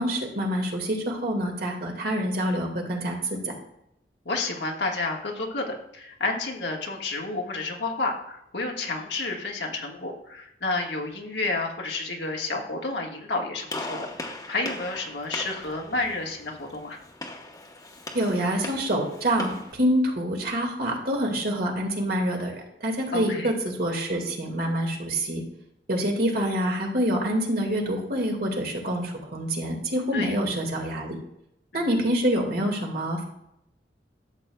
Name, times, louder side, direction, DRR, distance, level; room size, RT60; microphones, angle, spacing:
voice 1, 0.0-3.5 18.1-25.4 25.9-31.2 31.7-33.3, equal, 60° right, 1 dB, 1.9 m, -26 dB
voice 2, 4.2-17.0 23.1-23.5 30.1-30.4 31.7-31.9, left 3 dB, 85° left, 1 dB, 1.5 m, -30 dB
Gunshot gunfire, 13.7-19.7, left 2 dB, 20° left, 1.0 m, -39 dB
13.0 x 7.7 x 2.3 m, 0.80 s
head